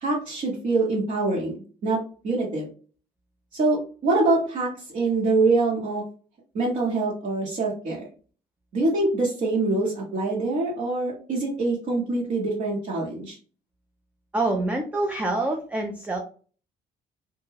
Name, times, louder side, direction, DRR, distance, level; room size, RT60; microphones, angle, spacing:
voice 1, 0.0-1.6 1.8-2.7 3.5-6.0 6.5-8.1 8.7-13.4, right 3 dB, 50° right, -4 dB, 0.9 m, -24 dB
voice 2, 14.3-16.2, right 2 dB, 10° right, 2 dB, 0.4 m, -26 dB
2.2 x 2.1 x 3.1 m, 0.40 s
cardioid pair, 110°, 17 cm